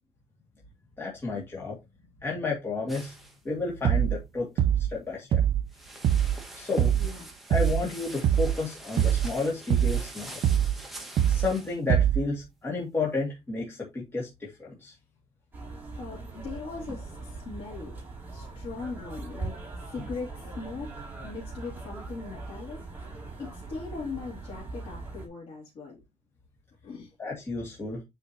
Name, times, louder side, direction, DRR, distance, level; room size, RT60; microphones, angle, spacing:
voice 1, 1.0-1.8 2.2-3.1 3.4-5.4 6.5-7.0 7.5-10.4 11.3-14.9 27.2-28.0, left 3 dB, 20° left, 2.2 m, -32 dB
sound 1, 2.9-3.4 5.7-11.8, right 1 dB, ahead, 1.6 m, -45 dB
sound 2, 3.8-4.2 4.6-5.0 5.3-5.7 6.0-6.4 6.8-7.1 7.5-7.9 8.2-8.6 9.0-9.3 9.7-10.1 10.4-10.8 11.2-11.5 11.9-12.3, right 10 dB, 50° right, 0.5 m, -23 dB
voice 2, 7.0-7.4 16.0-18.0 18.3-22.8 23.4-26.0 26.8-27.1, left 4 dB, 55° left, 2.7 m, -40 dB
sound 3, 15.5-25.3, right 3 dB, 15° right, 2.6 m, -40 dB
7.8 x 5.1 x 2.9 m
cardioid pair, 150°, 11 cm